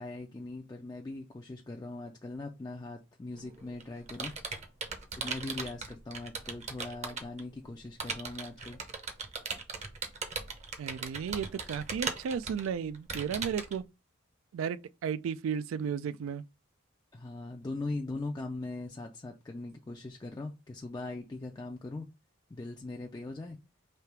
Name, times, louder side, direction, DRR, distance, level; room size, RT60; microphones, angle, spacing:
voice 1, 0.0-4.3 5.2-8.8 17.1-22.1 22.5-23.6, left 2 dB, 20° left, 0.3 m, -40 dB
Computer keyboard, 3.3-7.4 8.0-13.8, right 4 dB, 35° right, 0.7 m, -38 dB
voice 2, 10.8-13.8 14.5-16.4, right 7 dB, 85° right, 0.3 m, -34 dB
3.3 x 2.8 x 4.5 m
head